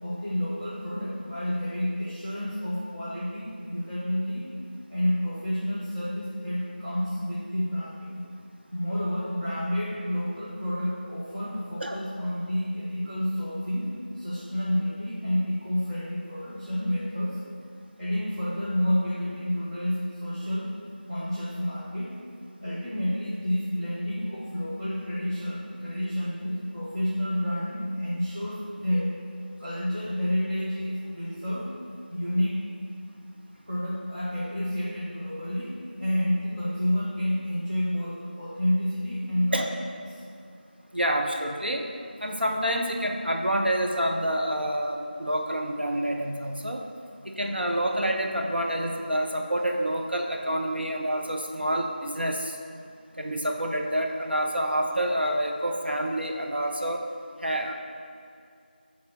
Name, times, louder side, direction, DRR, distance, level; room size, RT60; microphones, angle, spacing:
voice 1, 0.0-4.5 4.9-8.2 8.7-13.9 14.1-17.4 18.0-20.7 21.1-22.1 22.6-29.2 29.6-31.7 32.1-32.6 33.7-35.7 36.0-39.9, equal, 30° right, -11 dB, 0.9 m, -29 dB
voice 2, 40.9-41.8 42.2-46.8 47.2-52.6 53.2-57.0 57.4-57.7, right 1 dB, 70° right, 1 dB, 0.8 m, -28 dB
6.9 x 3.5 x 4.6 m, 2.4 s
figure-of-eight pair, 175°, 6 cm